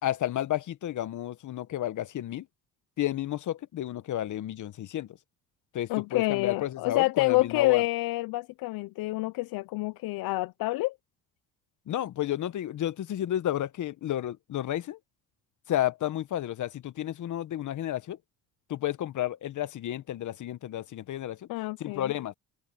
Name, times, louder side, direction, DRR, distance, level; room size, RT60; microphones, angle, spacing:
voice 1, 0.0-2.5 3.0-5.1 5.7-7.8 11.9-15.0 15.7-18.2 18.7-21.5 21.8-22.3, left 12 dB, 55° left, 1.1 m, -31 dB
voice 2, 5.9-10.9 21.5-22.1, left 20 dB, 75° left, 0.7 m, -28 dB
cardioid pair, 90°, 36 cm